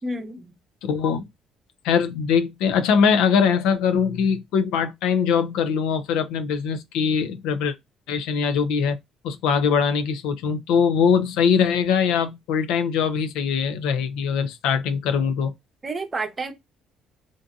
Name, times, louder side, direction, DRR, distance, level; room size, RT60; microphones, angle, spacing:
voice 1, 0.0-0.5 15.8-16.5, right 2 dB, 25° right, 0.7 m, -29 dB
voice 2, 0.8-1.3 1.8-7.7 8.1-9.0 9.2-15.5, left 6 dB, 90° left, 0.4 m, -22 dB
2.6 x 2.6 x 2.3 m
cardioid pair, 120°, 0 cm